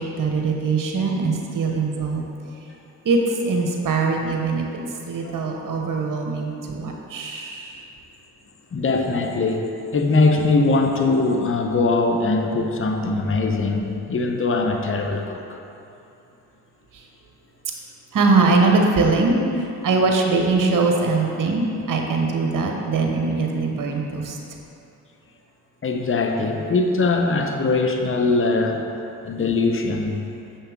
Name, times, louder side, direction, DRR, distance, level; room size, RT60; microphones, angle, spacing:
voice 1, 0.0-2.2 3.0-4.7 5.1-7.8 18.1-24.4, right 3 dB, 50° right, 1 dB, 1.1 m, -22 dB
voice 2, 8.7-15.6 19.8-19.9 25.8-28.8 29.2-30.2, left 3 dB, 30° left, 3 dB, 0.8 m, -21 dB
7.0 x 5.6 x 3.6 m, 2.7 s
supercardioid pair, 50°, 40 cm